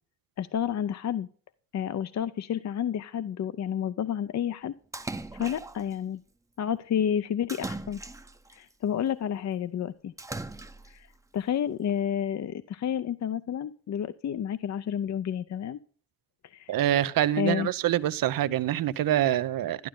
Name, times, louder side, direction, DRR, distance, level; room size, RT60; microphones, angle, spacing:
voice 1, 0.4-1.3 1.7-4.7 5.3-6.2 6.6-8.0 8.5-10.1 10.9-11.1 11.3-15.8 16.5-16.7 17.4-17.7, left 9 dB, 55° left, 0.6 m, -30 dB
Splash splatter, 4.9-5.9 7.5-8.6 10.2-11.0, right 2 dB, 10° right, 0.6 m, -38 dB
voice 2, 16.7-19.9, right 12 dB, 80° right, 0.7 m, -25 dB
12.0 x 11.5 x 3.8 m
cardioid pair, 95°, 34 cm